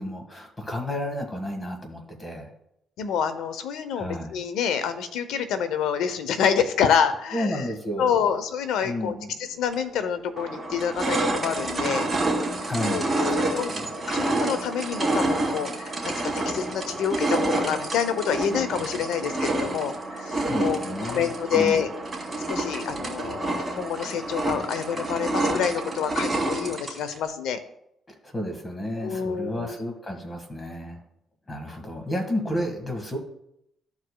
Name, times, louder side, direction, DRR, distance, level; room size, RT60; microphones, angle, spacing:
voice 1, 0.0-2.5 4.0-4.3 7.3-8.2 8.8-9.3 12.6-13.8 20.5-21.8 28.2-31.0 31.5-33.2, left 1 dB, 25° left, 4 dB, 1.7 m, -32 dB
voice 2, 3.0-7.7 8.0-12.1 12.8-21.9 22.5-27.6 29.0-29.7, left 7 dB, 90° left, 11 dB, 0.7 m, -27 dB
sound 1, 9.7-9.8 10.4-27.2, right 2 dB, 20° right, 2.6 m, -28 dB
14.0 x 4.7 x 2.3 m, 0.78 s
cardioid pair, 90°, 0 cm